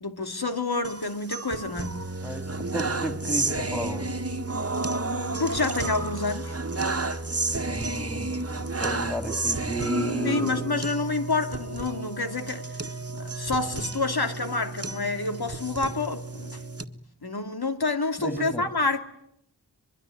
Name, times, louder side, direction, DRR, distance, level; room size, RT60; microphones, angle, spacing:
voice 1, 0.0-2.0 5.3-6.6 10.2-12.6 13.1-16.6 17.2-19.0, left 3 dB, 70° left, 2.7 m, -28 dB
sound 1, 0.8-16.8, right 2 dB, 35° right, 1.6 m, -31 dB
voice 2, 2.2-4.1 7.7-8.4 8.8-10.6 18.2-18.6, right 1 dB, 5° left, 3.9 m, -33 dB
23.5 x 23.0 x 9.8 m
wide cardioid pair, 55°, 39 cm